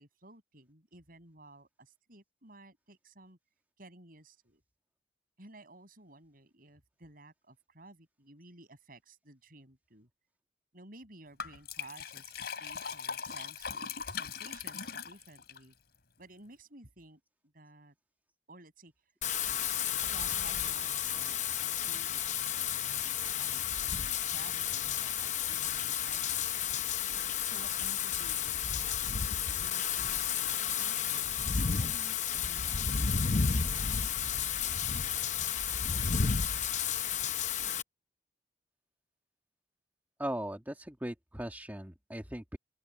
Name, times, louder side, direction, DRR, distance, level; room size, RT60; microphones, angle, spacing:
voice 1, 0.0-3.4 3.8-4.6 5.4-10.1 10.7-15.8 16.2-17.2 17.5-17.9 18.5-18.9 20.0-26.7 27.4-31.3 31.8-35.4, right 2 dB, 55° right, 7.8 m, -54 dB
Liquid, 11.4-15.6, left 6 dB, 65° left, 5.2 m, -40 dB
Wind / Rain, 19.2-37.8, left 7 dB, 45° left, 0.8 m, -32 dB
voice 2, 40.2-42.6, right 1 dB, 10° right, 2.2 m, -38 dB
open air
head